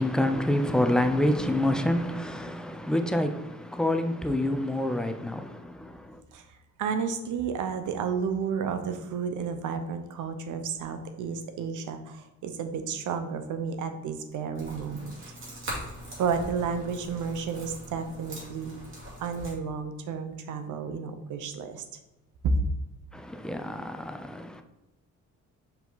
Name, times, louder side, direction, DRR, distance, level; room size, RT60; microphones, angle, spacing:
voice 1, 0.0-6.2 23.1-24.6, left 1 dB, 5° left, 0.3 m, -27 dB
voice 2, 6.8-15.3 16.2-18.7 19.2-21.8 22.4-22.5, right 6 dB, 90° right, 0.8 m, -32 dB
sound 1, 14.5-19.5, right 1 dB, 45° right, 2.3 m, -41 dB
5.3 x 4.9 x 3.9 m
cardioid pair, 165°, 30 cm